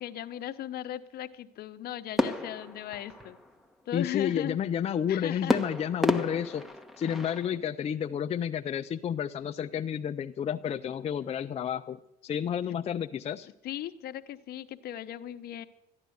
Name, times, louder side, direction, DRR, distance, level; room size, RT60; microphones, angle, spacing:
voice 1, 0.0-3.4 3.9-4.6 5.1-5.6 7.0-7.2 13.6-15.7, left 12 dB, 65° left, 9 dB, 0.9 m, -37 dB
sound 1, 2.2-3.7 5.5-7.6, left 1 dB, ahead, 1.1 m, -31 dB
voice 2, 3.9-6.7 7.0-13.5, left 8 dB, 40° left, 6 dB, 0.5 m, -31 dB
14.0 x 11.0 x 7.9 m, 0.81 s
cardioid pair, 110°, 17 cm